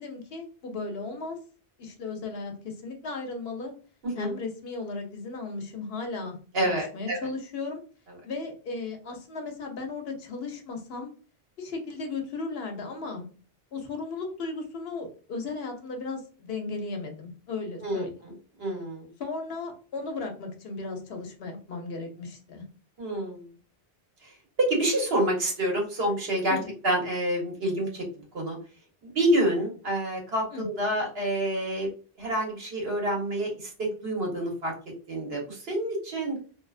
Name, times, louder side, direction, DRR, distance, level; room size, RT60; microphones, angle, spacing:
voice 1, 0.0-1.4 1.8-3.7 4.1-6.4 6.6-7.8 8.2-11.1 11.6-13.3 13.7-18.1 19.2-22.6 26.5-26.6 30.5-30.7, left 3 dB, 70° left, 3 dB, 0.9 m, -35 dB
voice 2, 6.5-7.2 17.8-18.0 18.6-19.1 23.0-23.5 24.6-26.6 26.8-28.6 29.0-31.9 32.2-34.7 35.1-36.4, right 1 dB, 70° right, -1 dB, 1.2 m, -27 dB
2.6 x 2.3 x 2.4 m, 0.38 s
omnidirectional pair, 1.1 m